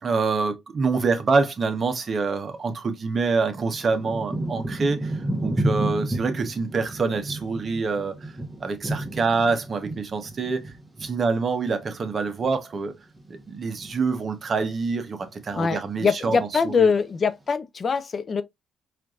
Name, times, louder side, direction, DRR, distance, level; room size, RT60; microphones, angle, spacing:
voice 1, 0.0-5.1 5.4-8.2 8.6-10.7 11.0-12.9 13.3-16.4 16.6-16.9, right 4 dB, 45° right, 0.8 m, -26 dB
Thunder / Rain, 2.6-2.7 3.3-12.9 13.1-14.0 14.6-14.9 15.2-16.0 16.6-16.7, right 1 dB, 15° right, 1.0 m, -32 dB
voice 2, 15.5-18.4, left 5 dB, 40° left, 0.3 m, -23 dB
4.5 x 2.5 x 2.3 m
cardioid pair, 90°, 0 cm